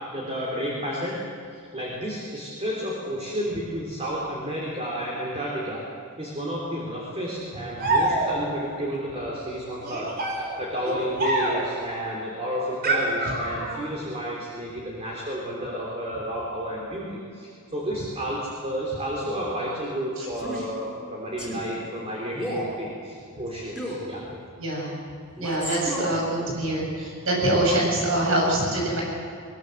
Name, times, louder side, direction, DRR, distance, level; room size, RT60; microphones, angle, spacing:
voice 1, 0.1-1.2 1.5-5.9 6.2-24.2, equal, 30° right, -3 dB, 3.4 m, -31 dB
sound 1, 7.8-8.6 9.8-11.8 12.8-13.9, right 2 dB, 45° right, 4.1 m, -26 dB
Male speech man speaking, 20.3-20.7 21.4-21.7 22.3-22.7 23.8-24.1 25.4-26.2, equal, ahead, 5.4 m, -32 dB
voice 2, 24.6-25.0 25.4-29.0, right 1 dB, 70° right, -1 dB, 7.0 m, -24 dB
22.5 x 20.5 x 7.8 m, 2.4 s
head